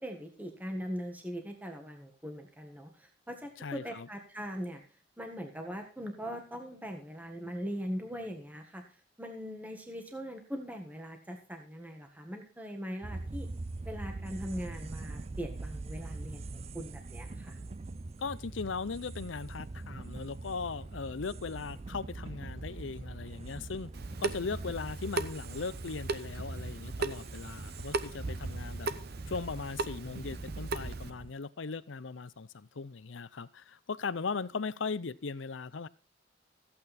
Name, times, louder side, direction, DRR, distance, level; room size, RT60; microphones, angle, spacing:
voice 1, 0.0-4.8 5.2-13.5 13.8-17.6, equal, 10° right, 1.5 m, -41 dB
voice 2, 3.6-4.1 18.2-23.9 24.2-28.9 29.3-35.9, left 4 dB, 75° left, 0.6 m, -38 dB
sound 1, 13.0-31.3, right 2 dB, 30° right, 0.5 m, -43 dB
Water tap faucet / Sink (filling or washing) / Drip, 23.9-31.1, right 3 dB, 55° right, 0.9 m, -38 dB
14.5 x 8.7 x 4.2 m
head